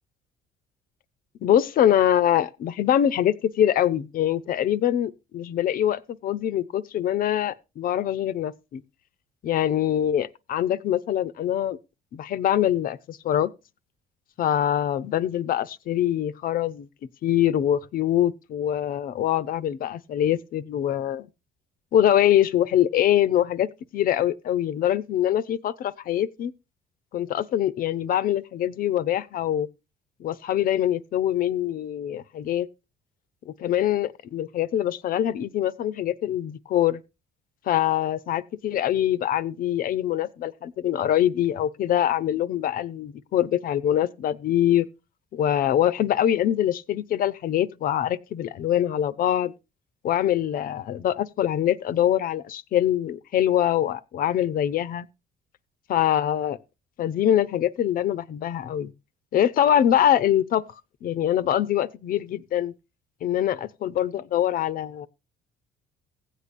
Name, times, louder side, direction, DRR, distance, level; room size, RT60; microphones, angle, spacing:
voice 1, 1.4-8.8 9.4-11.8 12.1-13.5 14.4-16.9 17.2-21.3 21.9-26.5 27.1-29.7 30.2-32.7 33.5-37.0 37.7-44.9 45.3-49.5 50.0-55.1 55.9-56.6 57.0-58.9 59.3-60.6 61.0-62.7 63.2-65.1, left 11 dB, 55° left, 0.6 m, -24 dB
16.0 x 8.3 x 2.5 m
cardioid pair, 110°, 17 cm